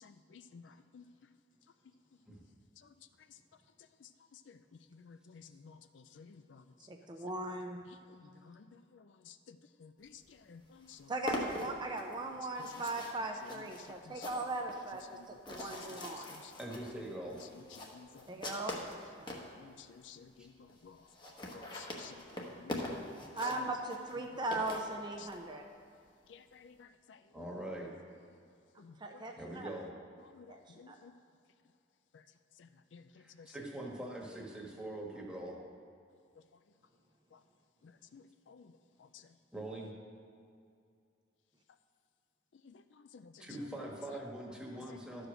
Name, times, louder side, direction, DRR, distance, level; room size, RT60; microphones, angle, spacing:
voice 1, 5.0-5.7 6.2-6.3 9.8-9.9 10.5-10.6 10.9-11.0 17.9-18.1 19.6-19.7 20.1-20.3 20.8-20.9 21.5-22.1 22.6-22.7 26.6-26.7 30.4-30.5 30.8-31.1 32.9-33.0 38.1-38.2, left 6 dB, 75° left, 11 dB, 0.4 m, -53 dB
voice 2, 6.9-7.8 11.1-16.3 18.3-18.8 23.3-25.6 29.0-29.7 30.5-30.6 30.9-31.0, right 2 dB, 25° right, 2 dB, 0.6 m, -39 dB
sound 1, 10.3-10.4 10.6-19.5 20.1-20.2 20.4-20.5 20.7-20.8 21.0-25.4, left 1 dB, 25° left, 1.0 m, -43 dB
voice 3, 16.6-17.4 20.4-20.5 27.3-27.9 29.3-29.9 33.2-35.6 39.5-39.9 43.4-45.3, right 1 dB, 5° right, -2 dB, 1.3 m, -43 dB
12.5 x 5.0 x 6.2 m, 2.4 s
head